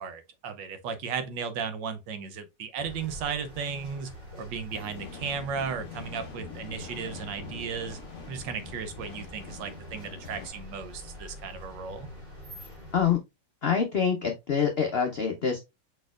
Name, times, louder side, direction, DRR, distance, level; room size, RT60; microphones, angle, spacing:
voice 1, 0.0-4.1 4.4-8.0 8.3-12.1, right 6 dB, 75° right, 1.4 m, -35 dB
sound 1, 2.8-13.1, equal, 30° right, 2.2 m, -46 dB
sound 2, 4.7-10.5, left 6 dB, 50° left, 0.9 m, -44 dB
voice 2, 13.6-15.6, left 7 dB, 75° left, 0.5 m, -25 dB
4.8 x 4.2 x 2.4 m
omnidirectional pair, 2.0 m